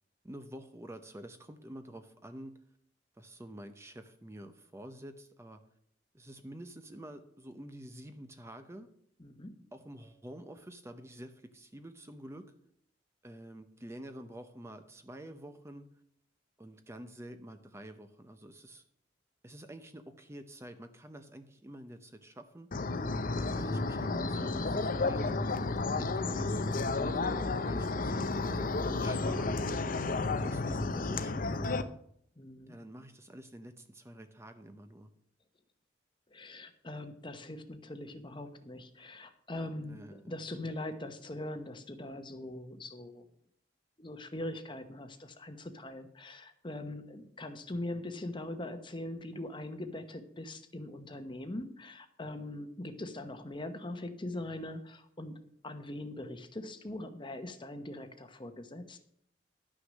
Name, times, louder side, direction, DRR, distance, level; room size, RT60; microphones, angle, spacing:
voice 1, 0.2-2.5 3.2-5.6 6.1-8.9 9.7-12.5 13.2-15.9 16.6-18.8 19.4-22.7 23.4-25.6 26.0-29.9 30.4-31.9 32.7-35.1 39.9-40.4, right 1 dB, 15° right, 8 dB, 0.7 m, -48 dB
voice 2, 9.2-9.6 32.4-32.7 36.3-43.2 44.0-55.4 55.6-59.0, left 1 dB, 25° left, 8 dB, 1.0 m, -42 dB
sound 1, 22.7-31.8, left 3 dB, 50° left, 0.7 m, -32 dB
11.5 x 6.3 x 6.3 m, 0.68 s
head